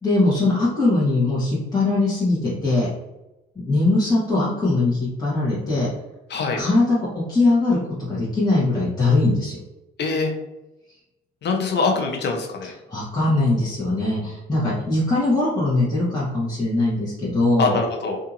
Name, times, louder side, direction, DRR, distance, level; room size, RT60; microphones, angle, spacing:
voice 1, 0.0-2.9 3.5-5.9 6.5-9.6 12.6-17.8, left 2 dB, 20° left, -9 dB, 1.1 m, -21 dB
voice 2, 6.3-6.6 10.0-10.3 11.4-12.7 17.6-18.2, left 4 dB, 60° left, 2 dB, 0.7 m, -23 dB
2.7 x 2.6 x 2.5 m, 0.96 s
cardioid pair, 90°, 20 cm